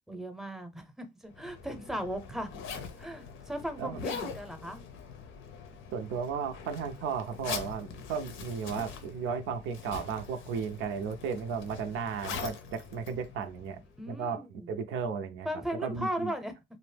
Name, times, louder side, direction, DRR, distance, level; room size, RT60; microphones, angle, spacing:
voice 1, 0.1-2.6 3.0-4.8 14.0-14.7 15.4-16.5, equal, ahead, 0.6 m, -37 dB
Zipper (clothing), 1.3-14.0, left 6 dB, 90° left, 0.6 m, -43 dB
voice 2, 5.9-13.8 14.1-15.5 15.8-16.3, right 6 dB, 90° right, 0.5 m, -34 dB
2.6 x 2.0 x 3.2 m
cardioid pair, 90°, 20 cm